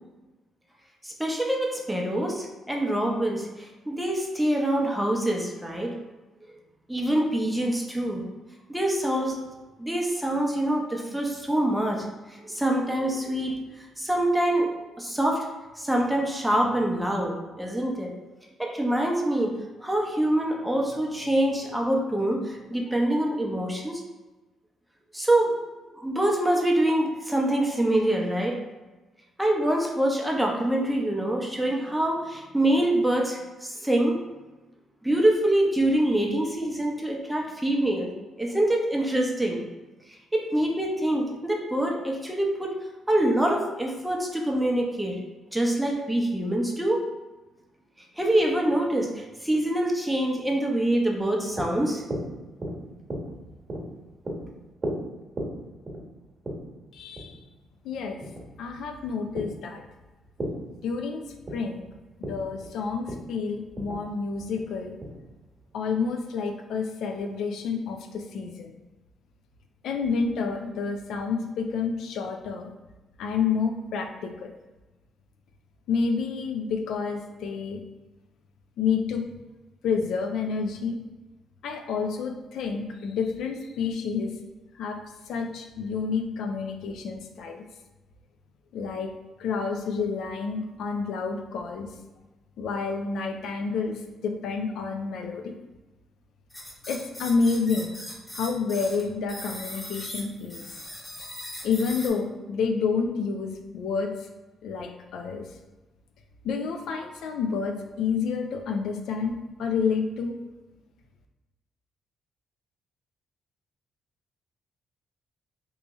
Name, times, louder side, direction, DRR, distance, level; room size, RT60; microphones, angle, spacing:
voice 1, 1.0-6.0 6.9-8.2 8.7-9.4 9.8-12.0 12.3-14.7 15.0-15.5 15.8-18.1 18.6-19.5 19.8-24.0 25.1-25.5 25.9-28.6 29.4-34.2 35.0-38.1 38.4-39.6 40.3-42.7 43.1-45.1 45.5-47.0 48.2-52.0, right 1 dB, 5° right, -1 dB, 0.7 m, -25 dB
sound 1, 51.2-65.7, right 1 dB, 35° right, 1.1 m, -38 dB
voice 2, 56.9-57.4 57.8-58.2 58.6-59.8 60.8-61.2 61.5-61.9 62.2-65.0 65.7-68.7 69.8-72.7 73.2-74.5 75.9-77.8 78.8-79.3 79.8-81.0 81.6-84.3 84.8-87.6 88.7-89.1 89.4-91.9 92.6-95.6 96.9-97.9 98.3-100.6 101.6-104.1 104.6-105.5 106.4-110.3, left 5 dB, 75° left, 4 dB, 0.3 m, -29 dB
sound 2, 96.5-99.0 99.3-102.1, left 1 dB, 20° left, 1.0 m, -39 dB
3.0 x 2.7 x 3.4 m, 1.1 s
cardioid pair, 90°, 0 cm